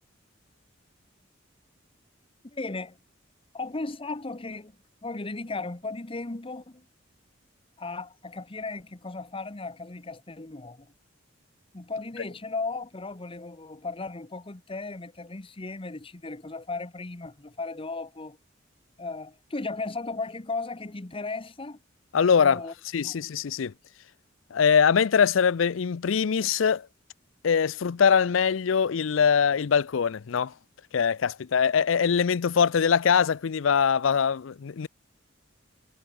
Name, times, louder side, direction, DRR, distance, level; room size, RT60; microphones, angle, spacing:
voice 1, 2.4-3.0 3.5-4.8 5.0-6.8 7.8-10.9 11.7-18.4 19.0-21.8 22.4-22.7 23.0-23.2, left 3 dB, 30° left, 1.1 m, -36 dB
voice 2, 22.1-22.6 22.9-23.7 24.5-26.9 27.4-30.5 30.9-34.9, left 6 dB, 75° left, 0.5 m, -22 dB
head